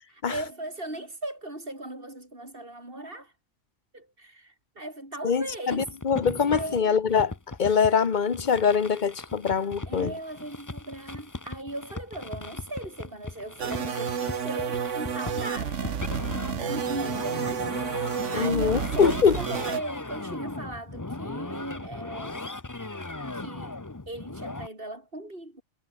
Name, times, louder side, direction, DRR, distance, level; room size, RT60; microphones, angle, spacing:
voice 1, 0.1-3.3 3.9-5.9 6.5-7.0 9.9-16.0 16.3-17.7 18.3-22.4 23.3-23.8 24.1-25.6, right 1 dB, 50° right, 7.5 m, -38 dB
voice 2, 5.2-7.3 7.6-10.1 18.3-19.4, left 6 dB, 40° left, 1.3 m, -23 dB
sound 1, 5.7-24.7, left 2 dB, 15° left, 1.0 m, -38 dB
sound 2, 13.6-19.8, right 7 dB, 75° right, 1.6 m, -31 dB
omnidirectional pair, 1.3 m